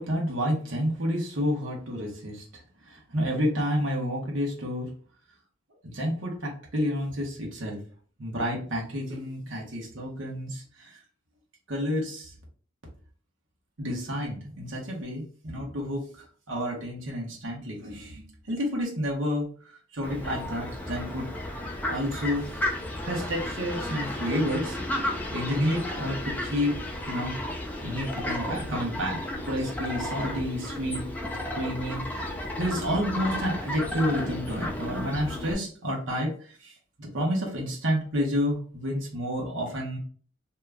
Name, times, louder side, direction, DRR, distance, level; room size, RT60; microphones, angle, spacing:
voice 1, 0.0-2.4 2.9-4.9 5.8-7.8 8.2-10.9 11.7-12.3 13.8-16.1 16.5-19.5 19.9-21.3 21.6-22.7 23.0-24.8 25.3-26.8 27.0-27.4 27.8-29.2 29.5-31.0 31.6-36.7 37.0-40.0, equal, 80° right, -2 dB, 1.1 m, -30 dB
Fowl, 20.0-35.5, left 1 dB, 10° left, 0.5 m, -33 dB
2.8 x 2.3 x 3.5 m, 0.43 s
head